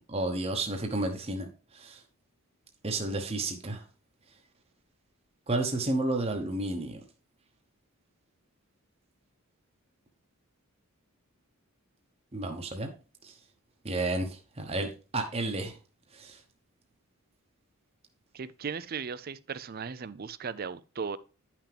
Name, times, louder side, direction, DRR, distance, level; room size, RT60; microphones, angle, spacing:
voice 1, 0.1-1.5 1.7-2.0 2.8-3.8 5.5-7.0 12.3-12.9 13.2-13.3 13.8-15.7 16.1-16.4, right 2 dB, 25° right, 1.0 m, -31 dB
voice 2, 18.3-21.2, right 6 dB, 40° right, 0.4 m, -37 dB
10.0 x 5.9 x 3.4 m
head